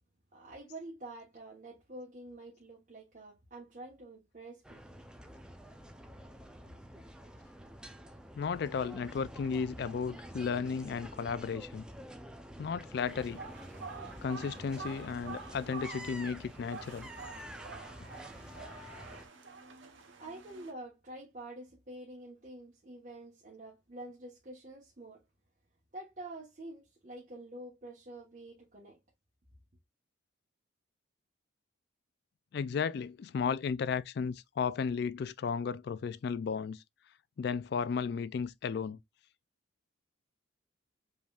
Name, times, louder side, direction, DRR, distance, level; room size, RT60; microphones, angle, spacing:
voice 1, 0.3-5.1 6.6-6.8 20.2-25.2 25.9-29.0, right 1 dB, 40° right, 1.3 m, -47 dB
sound 1, 4.6-19.3, equal, 5° right, 0.5 m, -48 dB
voice 2, 8.4-11.8 12.6-13.4 14.2-17.1 32.5-36.8 37.4-39.0, left 6 dB, 50° left, 0.3 m, -34 dB
sound 2, 13.0-20.7, right 4 dB, 65° right, 1.0 m, -48 dB
5.3 x 3.4 x 2.4 m
head